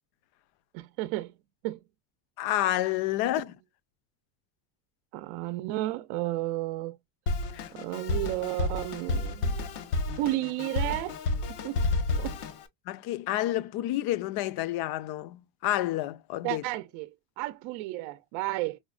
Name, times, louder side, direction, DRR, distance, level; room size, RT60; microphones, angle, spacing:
voice 1, 0.7-1.3 1.6-1.8 5.1-7.0 7.7-9.6 10.1-11.2 11.5-11.8 12.2-12.4 16.4-18.8, right 17 dB, 70° right, 0.6 m, -32 dB
voice 2, 2.4-3.6 7.5-7.7 12.9-16.6, left 15 dB, 50° left, 0.5 m, -29 dB
Drum kit, 7.3-12.7, left 2 dB, 80° left, 1.1 m, -30 dB
5.1 x 2.1 x 2.3 m
cardioid pair, 140°, 49 cm